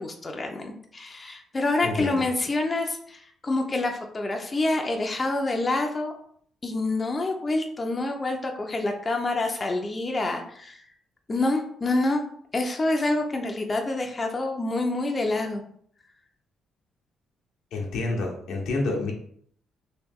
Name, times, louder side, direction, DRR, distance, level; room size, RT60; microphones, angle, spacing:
voice 1, 0.0-6.1 6.6-10.8 11.3-12.2 12.5-15.6, left 2 dB, 30° left, 2 dB, 0.5 m, -27 dB
voice 2, 1.8-2.2 17.7-19.1, left 3 dB, 80° left, 1 dB, 0.8 m, -28 dB
3.1 x 2.9 x 3.5 m, 0.62 s
cardioid pair, 90°, 0 cm